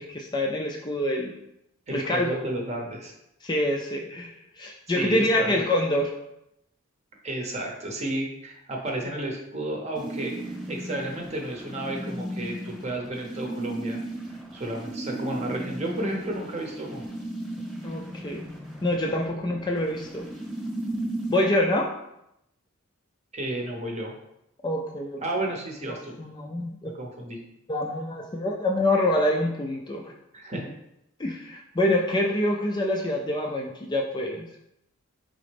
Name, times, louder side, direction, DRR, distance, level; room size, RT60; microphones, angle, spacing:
voice 1, 0.0-1.3 1.9-2.4 3.4-6.1 17.8-18.5 18.8-20.3 21.3-21.9 24.6-25.2 26.2-26.9 27.7-30.1 31.2-34.5, left 1 dB, 20° left, 1 dB, 0.3 m, -26 dB
voice 2, 1.9-3.1 4.9-5.7 7.2-10.3 10.7-14.0 14.5-17.0 23.3-24.1 25.2-26.1 26.8-27.4 30.3-30.7, right 1 dB, 30° right, 0 dB, 0.8 m, -32 dB
sound 1, 9.9-21.4, right 1 dB, ahead, 1.0 m, -35 dB
4.1 x 3.7 x 3.4 m, 0.82 s
head